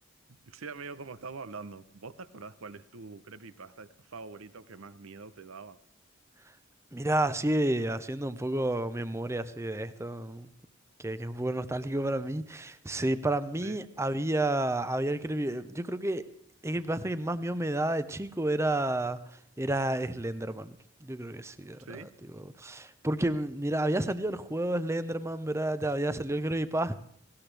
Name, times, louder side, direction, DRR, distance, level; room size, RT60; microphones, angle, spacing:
voice 1, 0.5-5.8 13.6-13.8 21.8-22.1, right 4 dB, 90° right, 0.8 m, -44 dB
voice 2, 6.9-10.5 11.0-16.2 16.6-26.9, right 1 dB, 15° right, 0.6 m, -31 dB
18.5 x 17.0 x 3.3 m
head